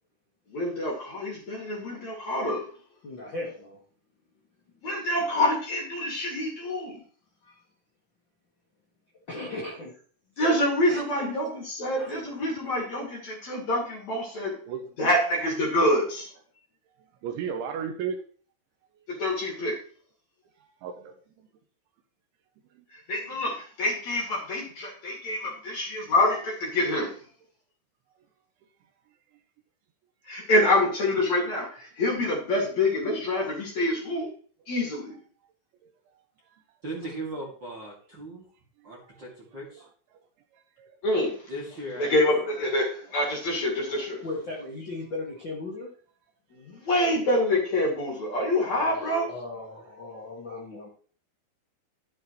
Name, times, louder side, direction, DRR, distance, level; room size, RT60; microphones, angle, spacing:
voice 1, 0.5-2.7 4.8-7.0 10.4-14.6 15.0-16.3 19.1-19.8 23.1-27.1 30.3-34.3 34.7-35.1 41.0-41.3 42.0-44.2 46.5-49.3, left 1 dB, 45° left, -2 dB, 3.0 m, -26 dB
voice 2, 3.0-3.8 9.3-9.9 10.9-11.0 12.0-12.2 15.1-15.2 44.2-45.9 48.5-50.9, left 2 dB, 80° left, -4 dB, 1.0 m, -37 dB
voice 3, 17.2-18.2 20.8-21.5 25.4-25.6 35.8-35.9 39.7-39.8 40.8-41.0 43.9-44.0, right 7 dB, 75° right, 5 dB, 3.1 m, -34 dB
voice 4, 36.8-38.4 38.8-39.9 41.5-42.3 42.5-42.8, right 1 dB, 35° right, -4 dB, 2.0 m, -38 dB
12.0 x 8.6 x 3.2 m, 0.43 s
omnidirectional pair, 5.8 m